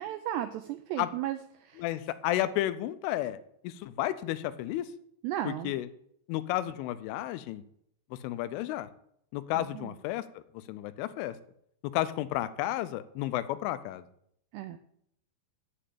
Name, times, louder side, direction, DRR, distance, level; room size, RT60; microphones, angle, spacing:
voice 1, 0.0-1.8 5.2-5.8 9.6-9.9 14.5-14.8, right 12 dB, 90° right, 8 dB, 2.4 m, -35 dB
voice 2, 1.8-3.4 3.6-4.9 5.6-5.9 6.3-7.6 8.2-8.9 9.3-10.2 10.7-11.4 11.9-14.0, left 14 dB, 85° left, 13 dB, 3.2 m, -32 dB
7.7 x 7.7 x 8.5 m, 0.70 s
omnidirectional pair, 5.5 m